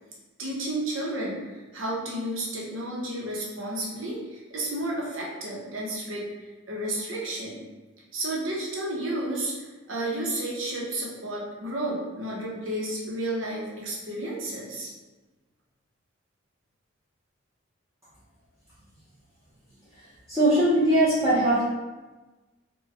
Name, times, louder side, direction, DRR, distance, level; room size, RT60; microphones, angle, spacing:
voice 1, 0.4-6.3 6.7-7.6 8.1-14.9, right 1 dB, 85° right, -3 dB, 0.8 m, -32 dB
voice 2, 20.3-21.6, right 1 dB, 15° right, -12 dB, 0.7 m, -20 dB
3.0 x 2.2 x 3.3 m, 1.2 s
head